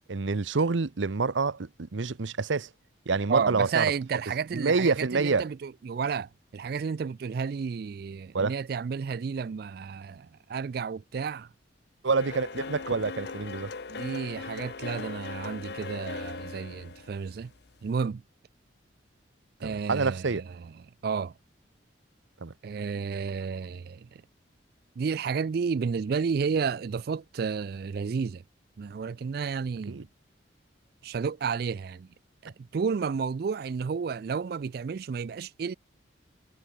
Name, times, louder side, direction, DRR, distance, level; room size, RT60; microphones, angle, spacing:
voice 1, 0.1-2.7 3.1-3.9 4.5-5.4 8.3-8.5 12.0-13.7 19.6-20.4 22.4-22.5 29.9-30.0, right 4 dB, 75° right, 0.7 m, -27 dB
voice 2, 3.3-11.5 13.9-17.5 17.8-18.2 19.6-21.3 22.6-24.2 25.0-28.4 28.8-30.0 31.0-32.1 32.4-35.8, right 5 dB, 55° right, 0.3 m, -31 dB
sound 1, 12.2-17.9, left 4 dB, 55° left, 0.7 m, -39 dB
head